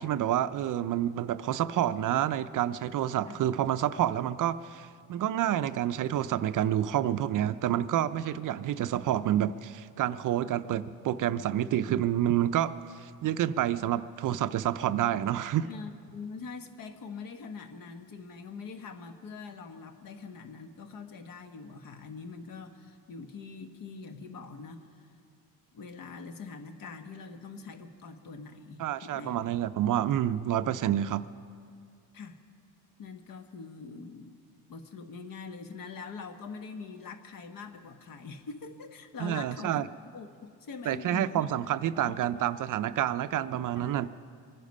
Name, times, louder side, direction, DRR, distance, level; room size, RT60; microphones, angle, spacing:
voice 1, 0.0-15.7 28.8-31.3 39.2-39.9 40.9-44.1, right 11 dB, 55° right, 13 dB, 0.5 m, -28 dB
voice 2, 15.6-25.1 25.7-29.4 32.1-32.4 33.0-34.4 34.7-41.6 42.0-42.3 43.8-44.1, left 4 dB, 55° left, 7 dB, 1.3 m, -44 dB
24.0 x 10.0 x 5.4 m, 2.2 s
cardioid pair, 125°, 40 cm